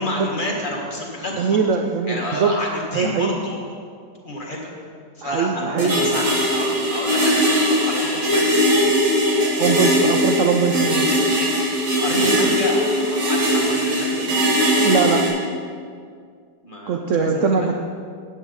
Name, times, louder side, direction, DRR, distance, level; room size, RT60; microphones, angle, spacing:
voice 1, 0.0-1.6 2.1-3.6 4.2-4.7 5.1-8.5 11.9-14.2 16.6-17.7, left 1 dB, 30° left, -2 dB, 1.5 m, -29 dB
voice 2, 1.3-2.5 2.9-3.4 5.2-6.1 9.6-11.1 14.8-15.2 16.9-17.7, right 5 dB, 65° right, 4 dB, 0.8 m, -21 dB
sound 1, 5.8-15.3, equal, 90° right, 3.7 m, -20 dB
13.0 x 9.2 x 3.9 m, 2.1 s
omnidirectional pair, 1.9 m